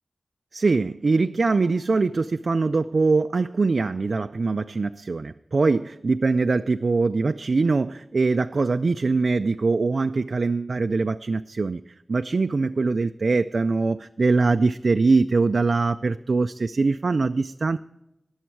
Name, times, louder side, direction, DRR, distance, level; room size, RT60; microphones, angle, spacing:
voice 1, 0.5-17.8, right 3 dB, 80° right, 8 dB, 0.3 m, -22 dB
19.5 x 7.2 x 4.6 m, 0.87 s
wide cardioid pair, 50°, 0 cm